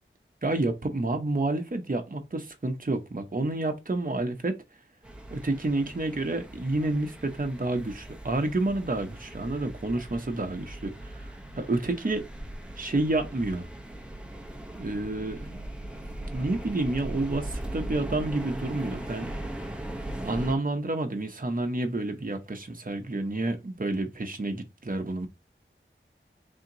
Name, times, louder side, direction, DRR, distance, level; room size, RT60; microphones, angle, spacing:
voice 1, 0.4-4.5 5.3-12.2 12.8-13.7 14.7-15.7 16.3-19.3 20.2-25.3, right 2 dB, 40° right, 0.8 m, -29 dB
sound 1, 5.0-20.5, right 1 dB, 5° right, 0.8 m, -39 dB
3.6 x 2.9 x 3.8 m
wide cardioid pair, 45°, 21 cm